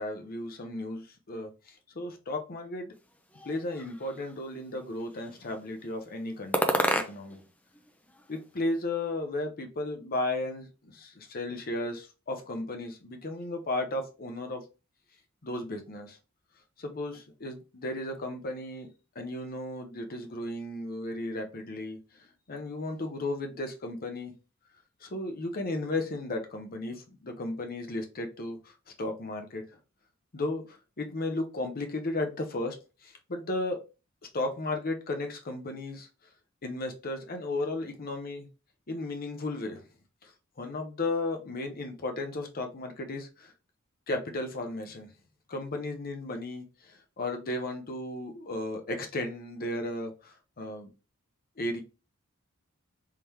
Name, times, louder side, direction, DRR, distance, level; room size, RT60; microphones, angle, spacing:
voice 1, 0.0-2.9 3.4-7.4 8.3-14.6 15.4-16.2 16.8-18.9 19.1-24.3 25.0-28.7 29.0-29.6 30.3-32.8 33.0-33.8 34.3-36.1 36.6-38.5 38.9-39.8 40.2-40.3 40.6-43.5 44.1-45.1 45.5-50.9 51.6-51.8, left 2 dB, 45° left, 0.8 m, -35 dB
sound 1, 3.3-4.3 5.0-5.6 6.5-7.5 7.8-8.8, left 1 dB, 5° left, 0.4 m, -31 dB
3.7 x 3.3 x 2.9 m
head